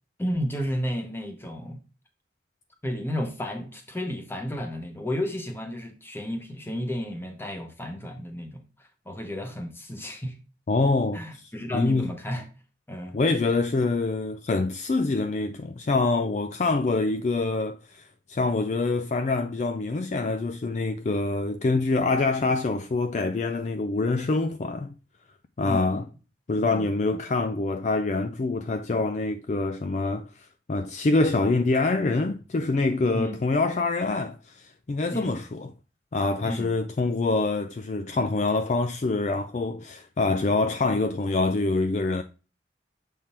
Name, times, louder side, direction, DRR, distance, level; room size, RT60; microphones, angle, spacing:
voice 1, 0.2-1.8 2.8-10.4 11.1-12.5 12.9-13.2 25.6-26.1 26.6-26.9 33.1-33.4 35.1-35.4 36.4-36.7, equal, 10° left, 1.0 m, -32 dB
voice 2, 10.7-11.2 11.7-12.1 13.1-24.9 25.6-26.0 26.5-35.7 36.1-42.2, left 3 dB, 35° left, 0.3 m, -25 dB
7.3 x 3.6 x 4.2 m
head